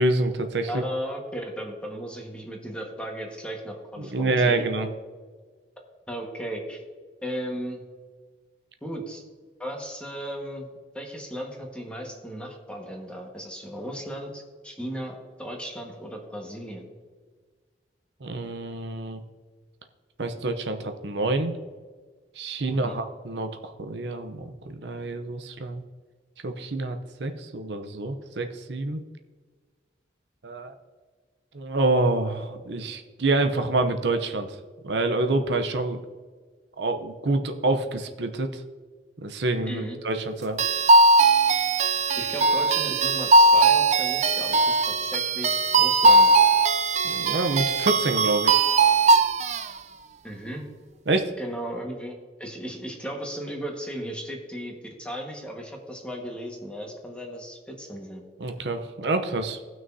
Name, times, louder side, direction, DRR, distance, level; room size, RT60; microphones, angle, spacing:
voice 1, 0.0-0.8 4.0-4.9 18.2-19.2 20.2-21.5 22.4-25.8 26.4-29.0 30.4-30.7 31.5-34.6 34.8-36.0 36.8-38.6 39.2-40.6 47.0-48.6 51.1-51.3 58.4-59.6, right 2 dB, 70° right, 7 dB, 0.7 m, -27 dB
voice 2, 0.7-4.6 6.1-6.8 7.2-7.8 8.8-9.2 9.6-10.7 10.9-16.8 22.7-23.0 39.7-40.0 42.2-46.4 50.2-50.7 51.4-52.1 52.4-58.2, equal, 5° left, 0 dB, 1.5 m, -36 dB
sound 1, 40.6-49.7, right 3 dB, 40° right, 0.5 m, -19 dB
18.0 x 6.2 x 2.7 m, 1.5 s
head